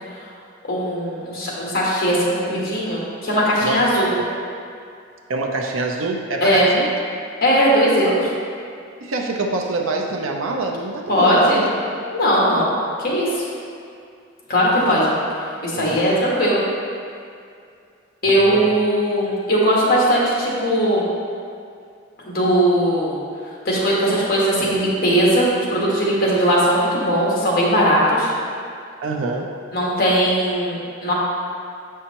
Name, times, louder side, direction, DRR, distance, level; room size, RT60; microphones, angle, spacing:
voice 1, 0.7-4.1 6.4-6.7 7.4-8.3 11.1-11.7 12.1-12.7 13.0-13.4 14.5-15.1 15.6-16.6 18.2-21.0 22.2-23.2 23.6-28.3 29.7-31.1, equal, 50° left, -5 dB, 1.5 m, -19 dB
voice 2, 3.6-4.3 5.3-6.9 9.0-11.7 14.8-15.0 15.7-16.0 18.2-18.8 29.0-29.5, right 3 dB, 85° right, 1 dB, 0.7 m, -26 dB
7.2 x 5.5 x 3.0 m, 2.4 s
head